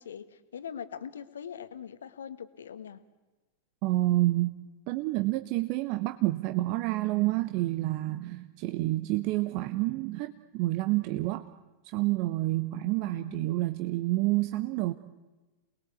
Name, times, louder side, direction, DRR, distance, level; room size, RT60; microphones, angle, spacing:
voice 1, 0.0-3.0 13.0-13.5, left 8 dB, 65° left, 12 dB, 1.5 m, -42 dB
voice 2, 3.8-4.5 4.9-11.5 11.9-14.9, right 18 dB, 45° right, 9 dB, 1.0 m, -28 dB
28.5 x 20.5 x 8.4 m, 1.1 s
figure-of-eight pair, 90°, 0 cm